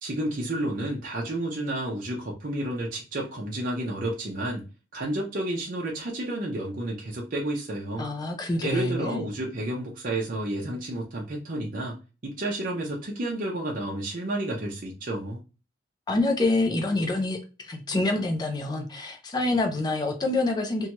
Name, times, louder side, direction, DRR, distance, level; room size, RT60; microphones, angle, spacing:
voice 1, 0.0-4.7 4.9-8.1 8.6-12.0 12.2-15.4, right 1 dB, 45° right, 0.6 m, -31 dB
voice 2, 8.0-9.2 16.1-20.9, left 2 dB, 20° left, 0.4 m, -26 dB
2.7 x 2.2 x 2.8 m
head